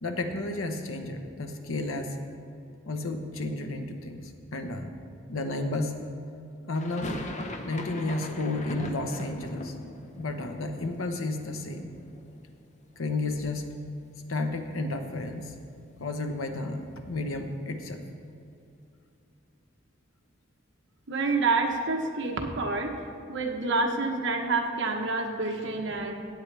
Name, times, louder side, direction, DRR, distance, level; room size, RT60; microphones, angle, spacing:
voice 1, 0.0-2.2 2.9-4.9 5.3-6.0 6.7-7.2 7.6-9.7 10.2-12.0 13.0-13.7 14.3-15.6 16.0-18.0, left 2 dB, 90° left, 6 dB, 1.0 m, -32 dB
sound 1, 6.7-12.7 12.9-13.8 14.1-14.2 14.4-16.6, left 1 dB, 35° left, 0.7 m, -40 dB
voice 2, 21.1-22.9 23.3-26.1, right 3 dB, 60° right, 2 dB, 1.1 m, -28 dB
16.5 x 8.5 x 3.4 m, 2.6 s
head